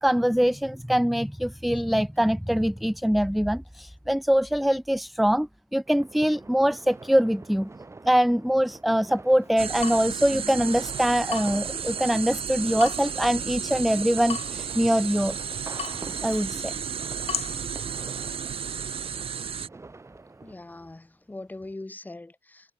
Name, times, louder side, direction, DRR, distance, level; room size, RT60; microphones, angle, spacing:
voice 1, 0.0-7.7 8.1-15.4 16.2-16.7, equal, ahead, 0.4 m, -23 dB
sound 1, 5.9-20.5, right 3 dB, 25° right, 4.4 m, -46 dB
Water tap faucet / Drip, 9.4-18.7, left 7 dB, 75° left, 3.5 m, -41 dB
sound 2, 9.6-19.7, right 7 dB, 60° right, 0.6 m, -33 dB
voice 2, 20.4-22.7, left 2 dB, 15° left, 1.7 m, -41 dB
wide cardioid pair, 170°, 11 cm